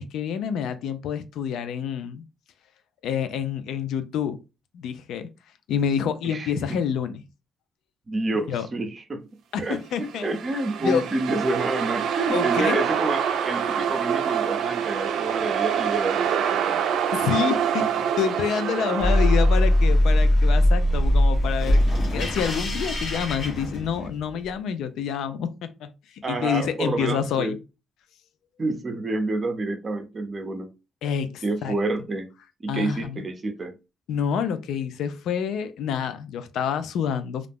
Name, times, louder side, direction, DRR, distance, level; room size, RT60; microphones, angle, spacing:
voice 1, 0.0-2.2 3.0-4.4 4.7-5.3 5.7-7.2 8.5-8.7 9.5-10.3 10.8-11.0 12.3-12.8 17.1-21.8 22.1-27.6 31.0-31.7 32.7-33.2 34.1-37.5, left 8 dB, 80° left, 0.3 m, -28 dB
voice 2, 6.2-6.8 8.1-9.3 9.6-16.8 26.2-27.6 28.6-30.7 31.4-32.3 32.6-33.7, right 2 dB, 35° right, 0.6 m, -28 dB
sound 1, 10.0-19.8, right 8 dB, 80° right, 0.3 m, -26 dB
sound 2, 19.0-24.3, left 1 dB, 50° left, 0.9 m, -20 dB
2.4 x 2.0 x 3.3 m
cardioid pair, 90°, 0 cm